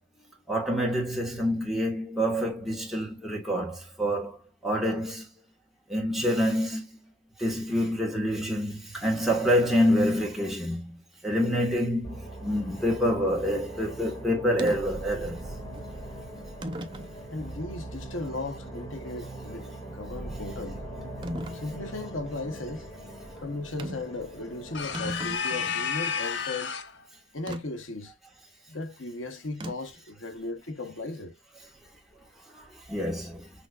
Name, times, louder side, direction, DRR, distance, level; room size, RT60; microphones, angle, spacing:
voice 1, 0.5-4.4 4.6-5.2 5.9-6.9 7.4-10.9 11.2-15.4 32.9-33.5, equal, ahead, 1.6 m, -27 dB
sound 1, 12.0-25.4, right 1 dB, 20° left, 2.0 m, -41 dB
sound 2, 14.6-14.8 15.7-15.9 16.6-17.1 17.8-17.9 21.2-21.6 23.8-24.1 24.5-24.6 24.8-25.9 27.5-27.6 29.6-30.0, equal, 25° right, 0.6 m, -36 dB
voice 2, 17.3-20.8 21.5-22.9 23.4-26.8 27.3-28.1 28.7-31.4, left 2 dB, 90° left, 1.0 m, -36 dB
sound 3, 24.7-27.0, left 6 dB, 65° left, 0.6 m, -31 dB
6.2 x 3.1 x 2.4 m
head